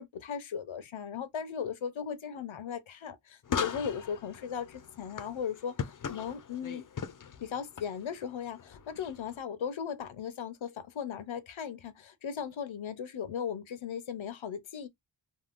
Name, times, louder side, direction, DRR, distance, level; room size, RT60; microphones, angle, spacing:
voice 1, 0.0-6.8 7.4-14.9, left 7 dB, 80° left, 0.6 m, -37 dB
sound 1, 3.4-9.4, left 7 dB, 45° left, 0.5 m, -39 dB
3.6 x 2.2 x 2.4 m
wide cardioid pair, 55°, 47 cm